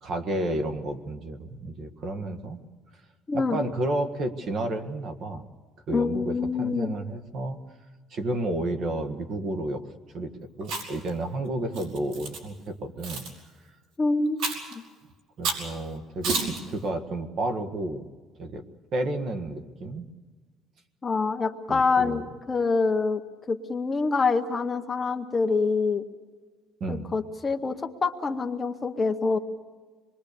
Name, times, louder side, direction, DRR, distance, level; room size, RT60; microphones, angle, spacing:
voice 1, 0.0-2.6 3.3-5.4 5.9-7.6 8.1-9.9 10.1-10.3 10.6-13.2 15.4-18.1 18.4-18.6 18.9-20.1 21.7-22.2 26.8-27.1, right 1 dB, 40° right, 8 dB, 1.7 m, -31 dB
voice 2, 3.3-3.6 5.9-6.9 14.0-14.4 14.7-14.8 21.0-22.2 22.5-23.2 23.5-26.0 26.9-29.4, left 4 dB, 20° left, 6 dB, 0.8 m, -26 dB
Chewing mastication, 10.6-11.1 11.7-12.4 13.0-13.3 14.4-14.7 15.4-15.7 16.2-16.6, right 4 dB, 85° right, 5.4 m, -30 dB
26.5 x 22.0 x 6.8 m, 1.4 s
cardioid pair, 175°, 0 cm